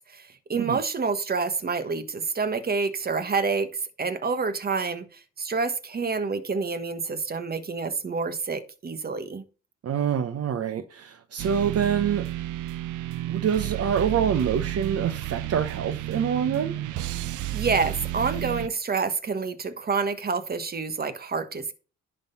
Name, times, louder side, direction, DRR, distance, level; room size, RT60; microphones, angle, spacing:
voice 1, 0.1-3.7 4.0-9.4 17.5-21.7, right 4 dB, 30° right, 1.4 m, -28 dB
voice 2, 9.8-12.3 13.3-16.7, right 8 dB, 55° right, 1.0 m, -26 dB
sound 1, 11.4-18.7, right 14 dB, 80° right, 0.7 m, -32 dB
10.5 x 4.0 x 5.4 m
cardioid pair, 90°, 30 cm